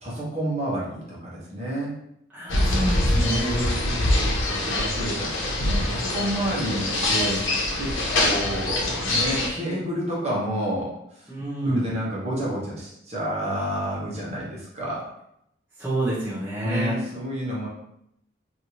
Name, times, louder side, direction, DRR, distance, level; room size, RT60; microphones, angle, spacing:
voice 1, 0.0-1.9 3.4-7.5 7.8-11.3 11.6-15.1 16.6-17.7, right 1 dB, 35° right, -7 dB, 1.0 m, -30 dB
voice 2, 2.3-3.6 11.3-11.9 15.8-17.0, right 1 dB, 10° right, -11 dB, 0.8 m, -27 dB
sound 1, 2.5-9.5, left 1 dB, 90° left, 0.8 m, -24 dB
3.1 x 2.7 x 2.9 m, 0.77 s
head